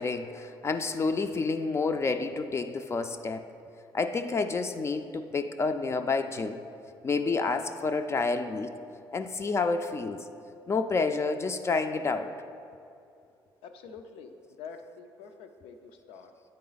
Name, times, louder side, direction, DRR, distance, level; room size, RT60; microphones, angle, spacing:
voice 1, 0.0-3.4 3.9-6.6 7.0-8.7 9.1-10.2 10.7-12.3, left 4 dB, 30° left, 8 dB, 0.3 m, -29 dB
voice 2, 13.6-14.3 14.6-16.3, left 5 dB, 90° left, 7 dB, 0.5 m, -46 dB
8.5 x 4.1 x 3.9 m, 2.5 s
cardioid pair, 90°, 9 cm